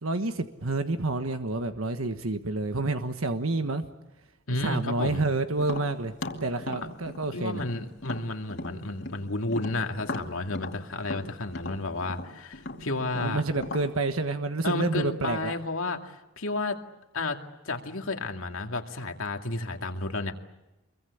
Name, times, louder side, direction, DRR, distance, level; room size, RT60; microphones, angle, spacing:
voice 1, 0.0-3.9 4.5-6.1 6.4-7.6 13.2-15.5, right 2 dB, 85° right, 8 dB, 1.4 m, -29 dB
voice 2, 4.5-5.2 7.3-13.4 14.6-16.8 17.1-17.4 17.6-20.3, left 2 dB, 80° left, 4 dB, 2.4 m, -32 dB
Tap, 5.6-9.2 9.5-13.9, left 2 dB, 55° left, 2.6 m, -37 dB
27.0 x 23.0 x 8.5 m, 1.0 s
head